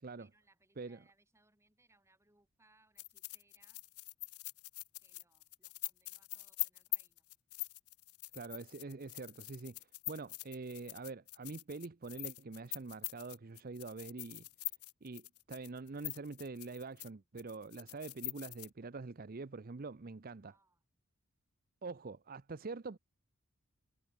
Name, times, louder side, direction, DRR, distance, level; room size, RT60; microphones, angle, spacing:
voice 1, 0.2-3.8 5.0-7.2 20.4-20.8, right 2 dB, 10° right, 7.5 m, -72 dB
sound 1, 3.0-17.1 17.4-18.7, left 22 dB, 80° left, 0.9 m, -44 dB
voice 2, 8.3-14.5 15.0-20.5 21.8-23.0, right 3 dB, 40° right, 0.6 m, -45 dB
head